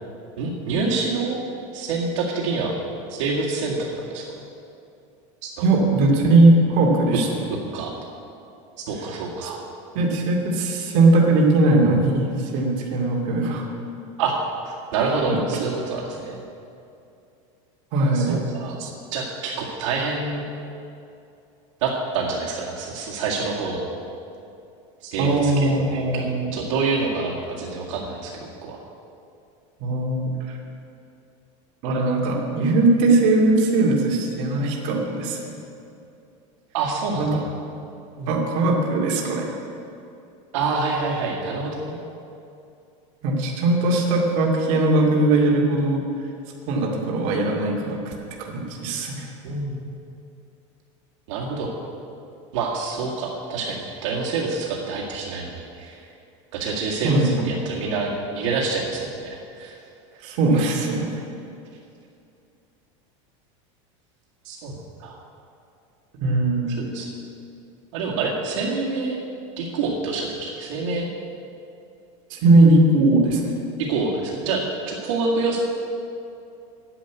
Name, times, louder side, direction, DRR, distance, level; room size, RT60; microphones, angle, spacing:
voice 1, 0.4-1.4 1.7-2.7 3.1-4.4 5.4-5.7 7.7-7.9 8.9-9.6 14.2-14.3 14.7-16.4 18.1-18.8 19.1-20.4 21.8-23.9 25.0-26.2 26.5-28.8 36.7-37.4 38.2-38.3 40.5-41.9 49.4-49.8 51.3-51.7 52.5-56.0 56.5-57.2 57.4-59.8 64.5-65.2 66.8-67.1 67.9-69.2 69.6-71.1 73.8-74.6 74.9-75.6, right 4 dB, 75° right, -2 dB, 2.0 m, -27 dB
voice 2, 5.6-7.4 9.4-9.5 9.9-13.6 15.3-15.4 17.9-18.4 18.8-18.9 25.2-26.5 29.8-30.2 30.5-30.6 31.8-35.5 37.1-37.3 38.3-39.5 43.2-46.0 46.7-48.1 48.4-49.3 57.0-57.3 60.2-61.2 66.2-66.8 72.3-73.5, right 2 dB, 50° right, -1 dB, 2.3 m, -19 dB
10.0 x 7.9 x 9.3 m, 2.6 s
supercardioid pair, 160°, 16 cm